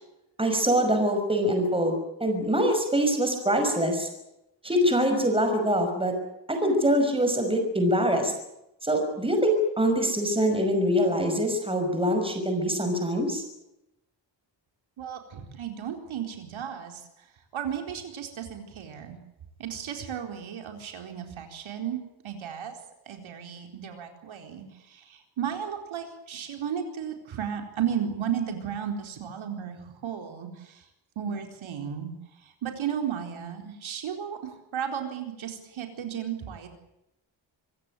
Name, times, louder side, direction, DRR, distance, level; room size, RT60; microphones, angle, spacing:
voice 1, 0.4-4.1 4.6-6.1 6.5-8.3 8.8-13.4, equal, 10° right, 5 dB, 5.8 m, -24 dB
voice 2, 15.0-17.3 17.5-19.2 19.6-22.8 23.1-30.8 31.2-32.1 32.4-36.7, right 8 dB, 90° right, 4 dB, 4.3 m, -34 dB
26.0 x 16.0 x 9.1 m, 0.87 s
wide cardioid pair, 155°, 46 cm